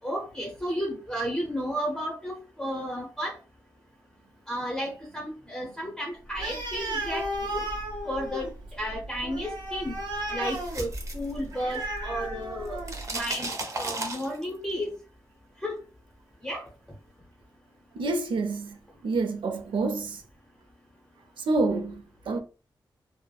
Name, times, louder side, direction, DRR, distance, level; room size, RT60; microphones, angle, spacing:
voice 1, 0.0-3.4 4.5-7.7 8.0-8.5 8.8-10.0 10.3-12.8 13.1-14.9 15.6-15.8 16.4-16.6, equal, 10° left, 0.6 m, -33 dB
Animal, 6.3-13.1, right 1 dB, 60° right, 1.2 m, -34 dB
sound 1, 10.3-12.0 12.3-14.7, right 2 dB, 40° right, 0.7 m, -35 dB
Piano, 11.8-13.1, left 4 dB, 80° left, 0.5 m, -46 dB
voice 2, 17.9-18.8 19.0-20.2 21.4-22.4, right 3 dB, 80° right, 0.5 m, -28 dB
3.1 x 2.0 x 2.2 m
wide cardioid pair, 100°, 8 cm